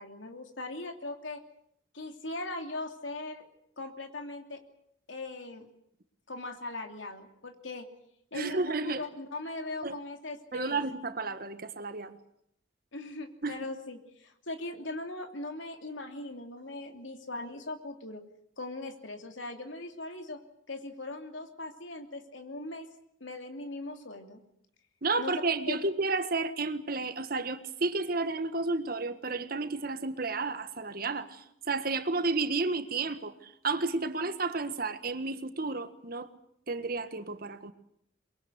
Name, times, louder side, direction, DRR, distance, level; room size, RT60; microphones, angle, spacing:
voice 1, 0.0-1.4 1.9-3.5 3.8-4.6 5.1-5.7 6.3-7.9 8.3-10.8 12.9-18.2 18.6-20.4 20.7-22.9 23.2-24.4 25.2-25.4 25.7-25.8, left 2 dB, 75° left, 5 dB, 3.0 m, -40 dB
voice 2, 8.3-9.0 9.8-10.0 10.5-12.2 13.4-13.6 25.0-36.3 36.7-37.7, right 3 dB, 50° right, 10 dB, 1.6 m, -32 dB
23.5 x 22.5 x 8.1 m, 0.71 s
head